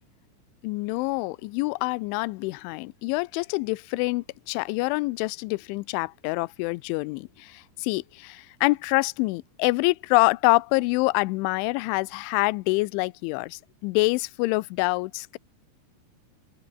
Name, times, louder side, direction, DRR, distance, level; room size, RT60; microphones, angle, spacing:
voice 1, 0.6-15.4, left 24 dB, 80° left, 3.0 m, -26 dB
open air
omnidirectional pair, 5.7 m